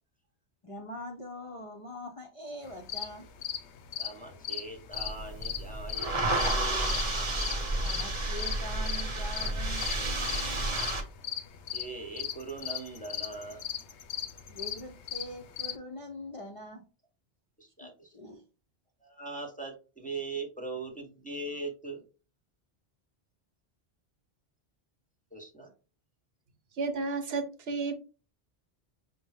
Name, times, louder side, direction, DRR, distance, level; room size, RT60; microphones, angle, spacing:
voice 1, 0.6-3.3 7.8-10.9 14.5-16.8 17.8-18.4, left 1 dB, 45° left, 1 dB, 0.5 m, -43 dB
sound 1, 2.6-15.8, left 8 dB, 85° left, 0.9 m, -38 dB
voice 2, 4.0-7.0 11.7-13.6 17.6-18.1 19.0-22.0 25.3-25.7, right 3 dB, 10° left, 1 dB, 0.7 m, -40 dB
sound 2, 4.9-11.0, right 2 dB, 30° right, 0.8 m, -31 dB
voice 3, 26.7-28.0, right 4 dB, 70° right, 6 dB, 0.9 m, -32 dB
5.4 x 2.1 x 3.4 m, 0.33 s
omnidirectional pair, 1.1 m